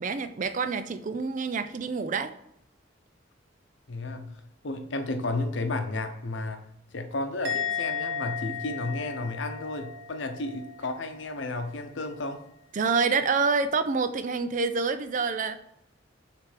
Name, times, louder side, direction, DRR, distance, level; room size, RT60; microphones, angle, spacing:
voice 1, 0.0-2.3 12.7-15.6, right 4 dB, 40° right, 11 dB, 0.4 m, -27 dB
voice 2, 3.9-4.4 4.6-6.6 6.9-12.4, left 2 dB, 80° left, 6 dB, 0.8 m, -32 dB
Musical instrument, 7.4-10.8 11.1-11.5, left 7 dB, 70° right, 0.9 m, -34 dB
6.2 x 3.4 x 4.9 m, 0.77 s
head